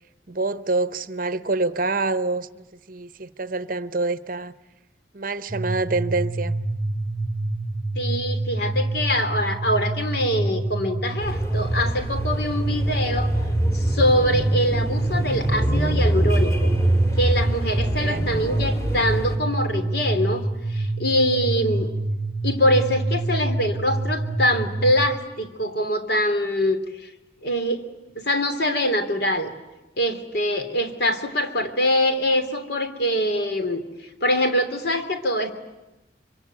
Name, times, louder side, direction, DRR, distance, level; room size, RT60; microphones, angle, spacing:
voice 1, 0.3-4.5 5.1-6.5 17.8-18.2, right 3 dB, 45° right, 0.9 m, -26 dB
sound 1, 5.5-25.1, right 2 dB, 10° right, 1.1 m, -27 dB
voice 2, 7.9-13.3 13.7-16.8 17.2-21.9 22.4-27.1 27.4-27.8 28.1-29.5 30.0-33.8 34.2-35.5, equal, 55° left, 3.1 m, -24 dB
sound 2, 11.2-19.4, right 1 dB, 15° left, 2.7 m, -25 dB
25.5 x 24.5 x 9.3 m
head